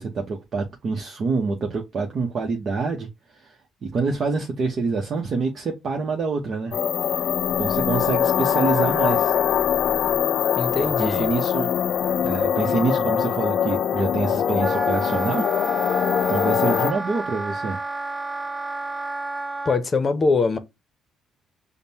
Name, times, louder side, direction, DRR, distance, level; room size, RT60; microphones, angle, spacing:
voice 1, 0.0-3.6 3.8-6.7 7.6-9.3 10.6-11.7 12.2-15.4 15.7-17.8, right 4 dB, 50° right, 0.8 m, -26 dB
sound 1, 6.7-16.9, left 8 dB, 65° left, 0.3 m, -22 dB
voice 2, 10.6-11.3 19.6-20.6, left 4 dB, 35° left, 0.7 m, -22 dB
Wind instrument woodwind instrument, 14.6-19.8, right 2 dB, 20° right, 0.3 m, -31 dB
5.1 x 2.1 x 2.7 m
supercardioid pair, 75°, 0 cm